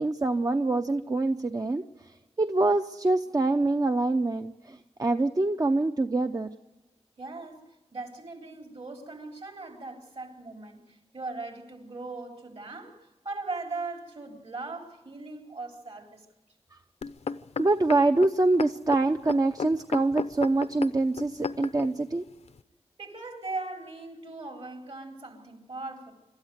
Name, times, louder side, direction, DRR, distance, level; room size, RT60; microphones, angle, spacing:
voice 1, 0.0-6.5 16.7-16.8 17.6-22.2, right 2 dB, 35° right, 0.7 m, -25 dB
voice 2, 7.2-16.3 23.0-26.1, right 3 dB, 60° right, 4.1 m, -39 dB
sound 1, 17.0-21.9 22.6-22.7, left 5 dB, 70° left, 0.7 m, -34 dB
26.5 x 13.0 x 8.0 m
wide cardioid pair, 95°, 11 cm